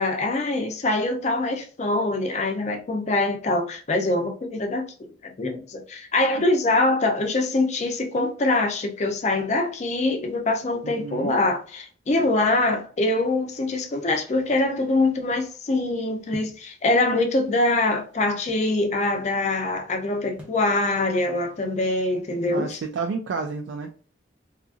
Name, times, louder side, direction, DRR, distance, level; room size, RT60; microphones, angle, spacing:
voice 1, 0.0-4.8 5.4-22.8, left 2 dB, 35° left, 0.5 m, -24 dB
voice 2, 10.8-11.4 22.5-23.9, right 4 dB, 75° right, 0.3 m, -30 dB
sound 1, 16.3-16.7 17.5-18.7 20.4-20.7, equal, 5° right, 0.6 m, -43 dB
2.7 x 2.4 x 2.4 m
head